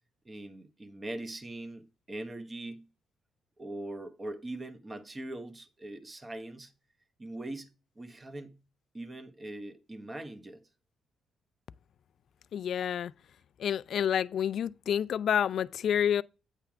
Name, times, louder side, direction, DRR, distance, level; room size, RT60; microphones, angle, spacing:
voice 1, 0.2-2.9 3.6-6.7 7.2-7.7 8.0-8.6 8.9-10.6, right 1 dB, 25° right, 1.1 m, -41 dB
voice 2, 12.5-13.1 13.6-16.2, left 9 dB, 65° left, 0.3 m, -28 dB
8.9 x 3.4 x 5.8 m
cardioid pair, 90°, 0 cm